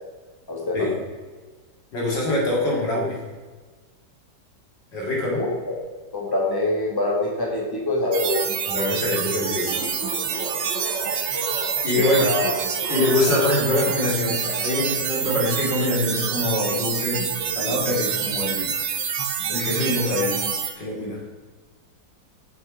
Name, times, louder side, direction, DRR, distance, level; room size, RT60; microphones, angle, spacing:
voice 1, 0.5-0.9 5.4-5.8 6.1-8.4 12.0-12.5, left 2 dB, 10° left, -3 dB, 2.2 m, -25 dB
voice 2, 1.9-3.2 4.9-5.4 8.7-9.8 11.8-12.3 12.9-18.7 19.5-20.4 20.8-21.2, left 2 dB, 80° left, -3 dB, 3.6 m, -24 dB
sound 1, 8.1-20.7, right 7 dB, 75° right, 1.6 m, -27 dB
sound 2, 9.5-14.0, right 1 dB, 35° right, 1.8 m, -35 dB
8.0 x 7.4 x 5.1 m, 1.4 s
omnidirectional pair, 1.9 m